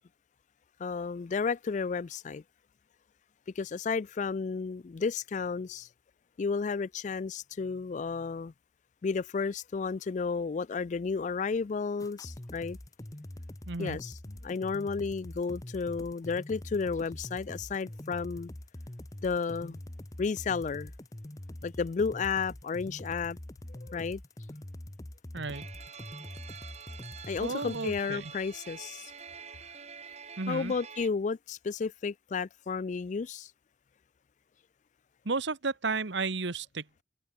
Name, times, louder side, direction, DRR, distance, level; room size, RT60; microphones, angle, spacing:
voice 1, 0.8-2.4 3.6-5.9 6.4-8.5 9.0-12.8 13.8-14.1 14.4-18.5 19.2-19.8 20.2-20.9 21.6-23.4 23.7-24.2 27.3-29.1 30.5-33.5, left 5 dB, 40° left, 0.4 m, -32 dB
sound 1, 12.0-28.0, left 1 dB, 20° left, 0.8 m, -44 dB
voice 2, 13.7-14.0 25.3-25.7 27.4-28.3 30.4-30.7 35.2-37.0, right 3 dB, 75° right, 1.3 m, -33 dB
sound 2, 25.5-31.1, right 6 dB, 35° right, 3.1 m, -47 dB
head